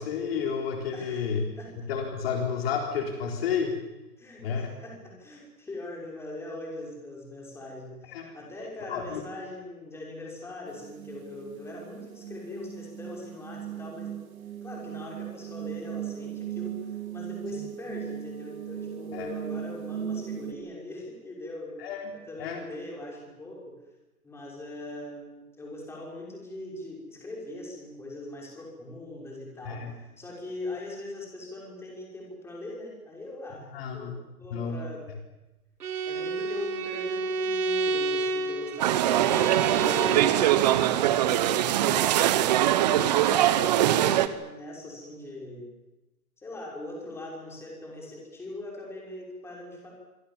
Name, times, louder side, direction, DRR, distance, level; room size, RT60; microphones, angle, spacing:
voice 1, 0.0-1.4 1.8-3.8 4.4-4.7 8.1-8.3 8.9-9.3 17.5-17.6 19.1-19.3 21.8-22.1 22.4-22.6 29.6-29.9 33.7-34.1 34.5-34.8, left 6 dB, 40° left, 2 dB, 4.0 m, -31 dB
voice 2, 0.9-1.7 4.2-14.2 14.6-21.8 22.1-23.8 24.2-35.0 36.0-45.7 46.4-49.9, left 1 dB, 5° left, -2 dB, 6.1 m, -41 dB
sound 1, 10.7-20.5, right 9 dB, 65° right, 3.1 m, -38 dB
Bowed string instrument, 35.8-40.5, right 3 dB, 85° right, 4.5 m, -29 dB
sound 2, 38.8-44.3, right 12 dB, 30° right, 1.1 m, -22 dB
25.5 x 25.0 x 7.4 m, 1.0 s
hypercardioid pair, 160°, 45 cm